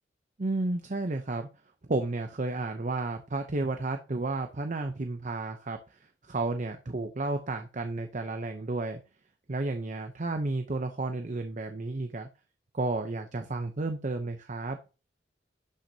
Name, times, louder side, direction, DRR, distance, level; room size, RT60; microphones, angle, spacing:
voice 1, 0.4-1.5 1.9-9.0 9.5-12.3 12.7-14.8, right 2 dB, 45° right, 6 dB, 0.7 m, -32 dB
11.5 x 6.0 x 2.8 m, 0.32 s
head